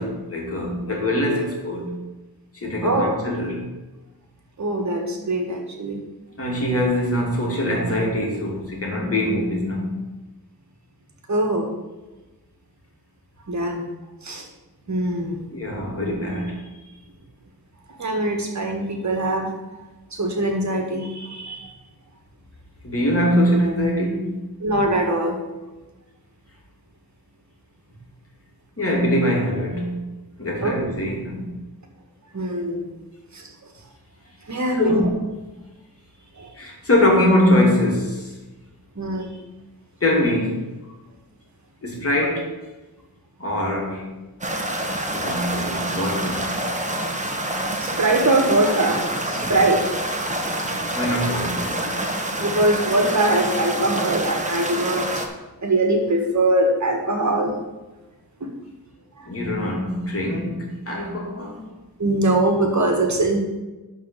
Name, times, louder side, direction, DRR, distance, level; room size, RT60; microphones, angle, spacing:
voice 1, 0.0-2.0 2.5-3.7 6.4-10.1 15.5-16.6 22.8-24.3 28.8-30.0 30.4-31.5 34.8-35.1 36.6-38.4 40.0-40.6 41.8-42.6 43.4-44.1 45.1-46.6 49.4-49.5 50.9-51.9 59.3-61.7, left 1 dB, 40° left, -1 dB, 2.5 m, -23 dB
voice 2, 2.8-3.1 4.6-6.0 11.3-11.7 13.5-13.9 14.2-14.5 14.9-15.5 18.0-19.8 20.1-21.7 24.6-25.4 30.6-30.9 32.3-32.9 33.3-33.5 34.5-35.1 36.4-36.5 39.0-39.4 42.2-42.3 47.8-49.0 49.3-49.8 52.4-55.2 55.6-57.5 58.4-58.5 59.2-59.3 62.0-63.4, right 1 dB, 50° right, 3 dB, 1.7 m, -22 dB
sound 1, 44.4-55.3, right 1 dB, 20° right, 1.2 m, -27 dB
11.5 x 4.0 x 6.7 m, 1.1 s
wide cardioid pair, 110°, 37 cm